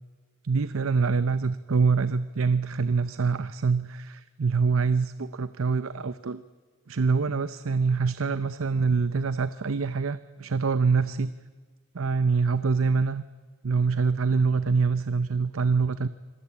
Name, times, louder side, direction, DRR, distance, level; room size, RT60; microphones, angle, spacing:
voice 1, 0.4-6.4 6.9-11.3 11.9-13.2 13.6-16.1, right 4 dB, 75° right, 14 dB, 0.7 m, -25 dB
26.5 x 20.0 x 8.6 m, 1.5 s
head